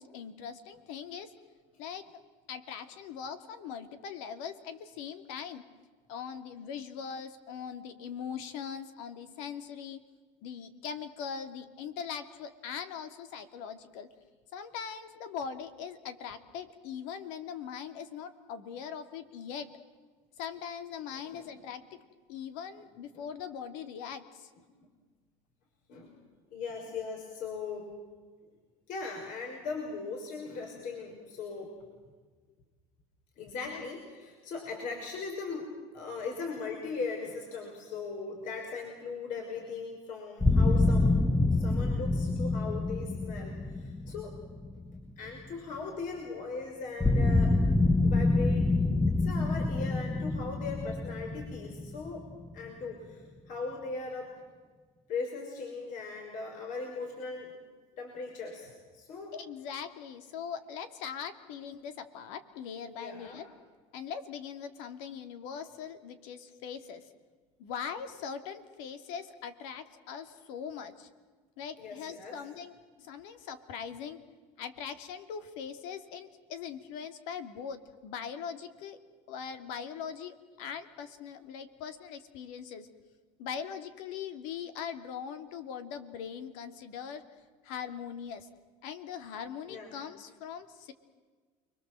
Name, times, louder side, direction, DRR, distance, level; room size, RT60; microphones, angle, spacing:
voice 1, 0.0-1.3 1.8-2.1 2.5-5.6 6.1-10.0 10.4-14.1 14.5-19.7 20.4-22.0 22.3-24.5 33.7-33.8 59.3-63.5 63.9-67.1 67.6-71.1 71.6-74.2 74.6-79.0 79.3-82.9 83.4-87.3 87.6-88.5 88.8-90.9, left 7 dB, 75° left, 9 dB, 2.6 m, -41 dB
voice 2, 21.1-21.6 22.8-22.9 23.1-23.2 24.8-24.9 25.9-26.1 26.5-28.0 28.9-31.7 33.4-41.2 41.5-44.3 45.2-47.6 48.0-48.7 49.2-52.3 52.5-54.3 55.1-57.6 58.0-59.3 63.0-63.4 71.8-72.4 89.7-89.9, left 4 dB, 55° left, 1 dB, 5.8 m, -39 dB
sound 1, 40.4-45.4 47.0-52.7, left 2 dB, 5° left, 1.0 m, -27 dB
29.5 x 22.5 x 7.7 m, 1.4 s
supercardioid pair, 115°, 16 cm